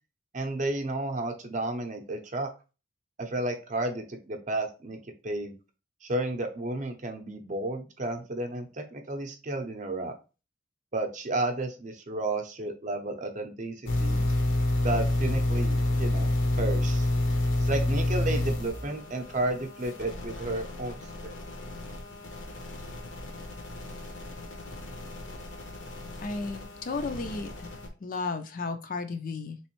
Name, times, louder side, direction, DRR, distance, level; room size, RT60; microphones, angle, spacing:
voice 1, 0.3-2.5 3.2-5.5 6.0-10.1 10.9-14.2 14.8-17.1 17.6-21.4, right 2 dB, 40° right, 5 dB, 0.6 m, -32 dB
sound 1, 13.8-27.9, left 1 dB, 70° left, 0.8 m, -30 dB
voice 2, 26.2-27.7 28.0-29.7, left 3 dB, 45° left, 8 dB, 0.4 m, -34 dB
3.5 x 3.1 x 2.9 m, 0.32 s
head